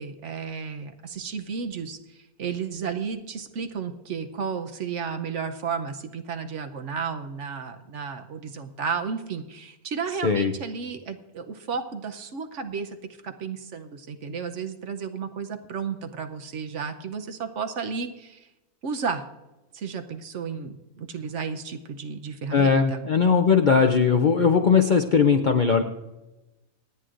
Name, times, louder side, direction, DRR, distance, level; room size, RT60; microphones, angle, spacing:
voice 1, 0.0-18.5 18.8-19.2 19.7-23.1, right 6 dB, 60° right, 7 dB, 1.0 m, -33 dB
voice 2, 22.5-25.8, left 6 dB, 50° left, 5 dB, 0.6 m, -19 dB
26.5 x 9.5 x 2.5 m, 1.0 s
omnidirectional pair, 1.5 m